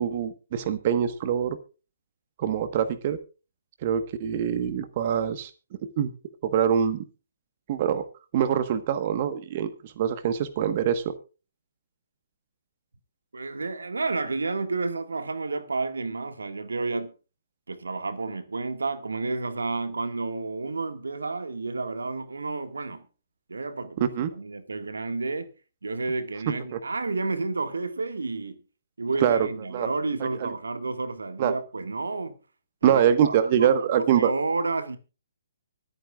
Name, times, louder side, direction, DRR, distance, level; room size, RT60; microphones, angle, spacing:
voice 1, 0.0-1.6 2.4-3.2 3.8-5.5 6.0-6.1 6.4-7.0 7.7-8.0 8.3-11.1 24.0-24.3 26.7-26.8 29.2-29.5 29.7-29.9 30.2-30.5 31.4-31.5 32.8-34.3, right 9 dB, 40° right, 1.3 m, -24 dB
voice 2, 13.3-17.1 17.7-23.0 23.5-25.5 25.8-28.6 29.0-32.4 32.8-33.7 33.9-35.0, right 3 dB, 85° right, 1.8 m, -31 dB
24.5 x 9.2 x 2.4 m
hypercardioid pair, 140°, 0 cm